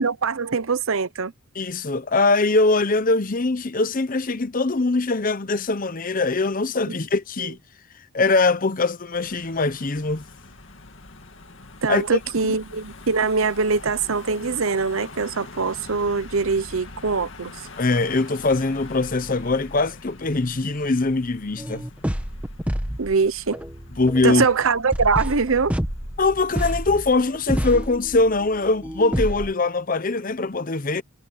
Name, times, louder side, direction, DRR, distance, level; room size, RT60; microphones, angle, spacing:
voice 1, 0.0-1.3 6.9-7.0 11.8-17.5 23.0-23.6 24.2-25.7, right 4 dB, 70° right, 0.8 m, -23 dB
voice 2, 1.5-7.6 8.1-10.3 11.9-12.0 12.4-12.6 17.8-21.8 24.0-24.5 26.2-31.0, left 3 dB, 40° left, 0.8 m, -22 dB
Car passing by / Engine, 9.1-27.8, left 2 dB, 60° left, 2.3 m, -44 dB
sound 1, 21.6-29.5, equal, 5° right, 1.1 m, -29 dB
head